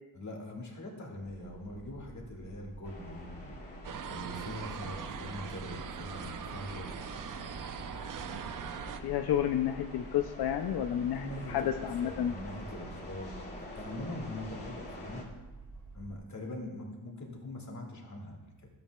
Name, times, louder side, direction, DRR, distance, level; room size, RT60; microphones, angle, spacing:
voice 1, 0.1-3.6 4.1-7.1 11.1-15.3 15.9-18.5, left 1 dB, 45° left, 0 dB, 2.0 m, -42 dB
sound 1, 1.2-16.2, right 2 dB, 5° left, 1.8 m, -49 dB
sound 2, 2.8-15.2, left 1 dB, 25° left, 2.1 m, -48 dB
sound 3, 3.8-9.0, right 8 dB, 55° right, 0.6 m, -41 dB
voice 2, 9.0-12.3, left 10 dB, 85° left, 6 dB, 0.5 m, -31 dB
12.5 x 8.8 x 2.3 m, 1.1 s
cardioid pair, 85°, 38 cm